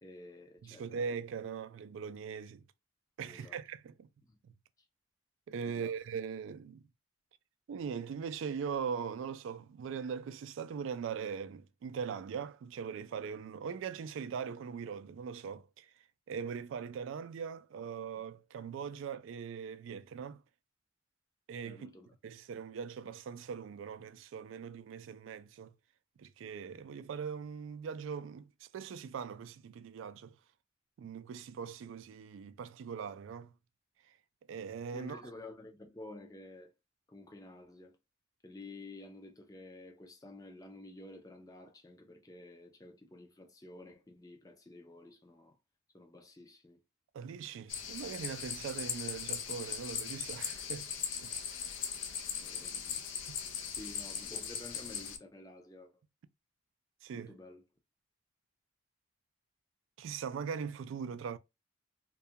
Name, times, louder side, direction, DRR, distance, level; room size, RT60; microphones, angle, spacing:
voice 1, 0.0-1.0 3.2-3.6 4.2-4.4 5.6-5.9 21.6-22.1 34.9-36.7 37.1-38.0 38.4-45.6 45.9-46.8 52.4-53.1 53.7-55.9 57.1-57.6, left 2 dB, 20° left, 0.4 m, -51 dB
voice 2, 0.6-2.6 3.2-4.1 4.4-4.5 5.5-6.8 7.7-15.9 16.3-20.4 21.5-22.0 22.2-25.7 26.2-30.4 31.0-33.5 34.5-35.2 47.1-50.9 51.2-51.8 53.3-53.4 57.0-57.3 60.0-61.4, right 6 dB, 85° right, 0.3 m, -41 dB
sound 1, 47.7-55.2, left 7 dB, 85° left, 0.4 m, -39 dB
2.3 x 2.2 x 2.7 m
head